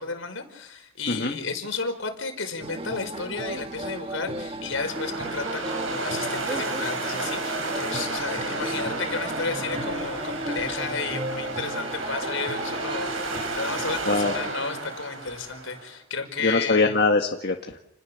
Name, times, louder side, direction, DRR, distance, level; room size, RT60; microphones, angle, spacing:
voice 1, 0.0-16.9, left 4 dB, 70° left, 6 dB, 5.2 m, -33 dB
voice 2, 1.1-1.4 14.0-14.3 16.4-17.8, left 3 dB, 50° left, 3 dB, 1.7 m, -22 dB
sound 1, 2.6-14.5, right 1 dB, 25° right, 1.5 m, -35 dB
sound 2, 4.7-15.9, right 3 dB, 75° right, 7.6 m, -32 dB
30.0 x 21.0 x 7.1 m, 0.83 s
head